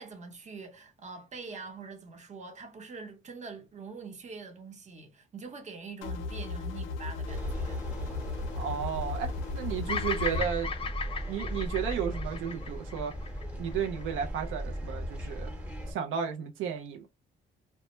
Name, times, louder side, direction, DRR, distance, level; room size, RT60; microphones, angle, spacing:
voice 1, 0.0-7.9, right 4 dB, 35° right, 0.8 m, -44 dB
sound 1, 6.0-10.4, left 4 dB, 90° left, 0.5 m, -36 dB
sound 2, 7.3-15.9, equal, 5° right, 0.8 m, -37 dB
voice 2, 8.6-10.7 11.3-13.1 13.6-15.5 15.9-17.1, right 8 dB, 85° right, 0.5 m, -33 dB
Bird vocalization bird call bird song, 9.9-14.2, left 5 dB, 30° left, 0.4 m, -36 dB
2.1 x 2.0 x 2.9 m
cardioid pair, 90°, 20 cm